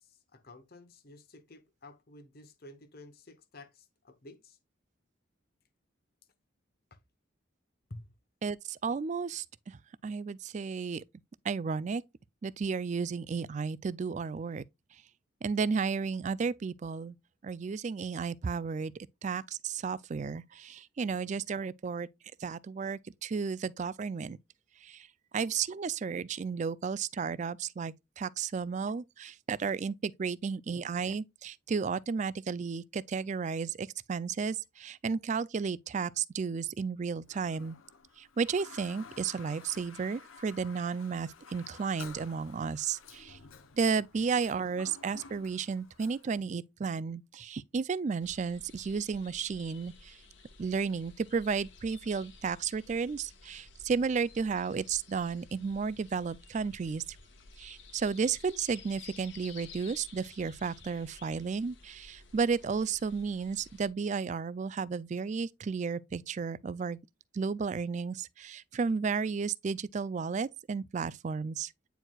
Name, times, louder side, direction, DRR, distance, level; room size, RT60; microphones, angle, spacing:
voice 1, 0.0-4.6 7.9-8.1, left 2 dB, 50° left, 1.0 m, -51 dB
voice 2, 8.4-9.8 10.0-11.0 11.4-12.0 12.4-14.6 15.4-17.2 17.4-18.9 19.2-22.1 22.4-24.4 24.8-25.1 25.3-37.8 38.2-43.4 43.8-50.2 50.6-57.0 57.6-67.0 67.3-71.7, right 5 dB, 35° right, 0.3 m, -33 dB
Toilet flush, 37.2-46.4, left 5 dB, 90° left, 0.9 m, -52 dB
sound 1, 48.2-63.9, left 4 dB, 65° left, 1.2 m, -54 dB
9.2 x 4.5 x 2.3 m
head